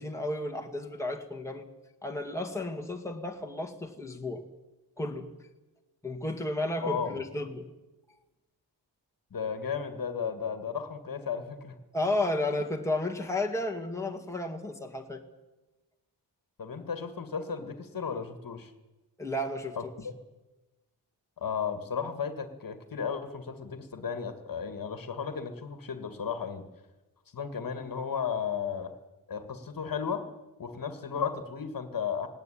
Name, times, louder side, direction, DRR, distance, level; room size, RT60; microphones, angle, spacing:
voice 1, 0.0-1.7 2.0-4.4 5.0-5.3 6.0-7.7 11.9-15.2 19.2-19.9, left 1 dB, 5° left, 2 dB, 2.0 m, -32 dB
voice 2, 6.8-7.2 9.3-11.8 16.6-18.7 19.8-20.1 21.4-26.7 27.3-28.9 29.3-30.3 30.6-32.3, left 6 dB, 50° left, 9 dB, 1.8 m, -34 dB
18.0 x 18.0 x 10.0 m, 1.1 s
wide cardioid pair, 135°, 42 cm